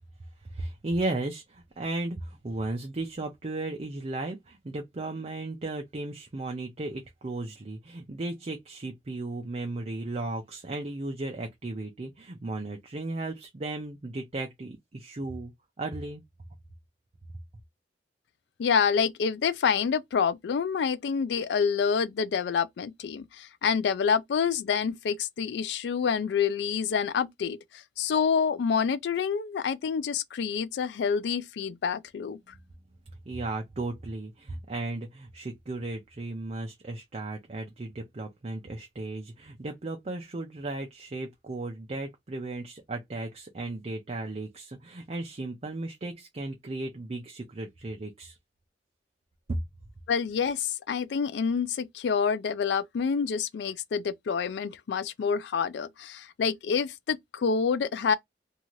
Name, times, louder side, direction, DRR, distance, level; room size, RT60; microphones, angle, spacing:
voice 1, 0.5-15.5 15.8-16.2 33.3-48.4 49.5-49.6, right 2 dB, 35° right, 0.5 m, -35 dB
voice 2, 18.6-32.4 50.1-58.1, left 6 dB, 70° left, 0.3 m, -27 dB
2.7 x 2.4 x 3.0 m
head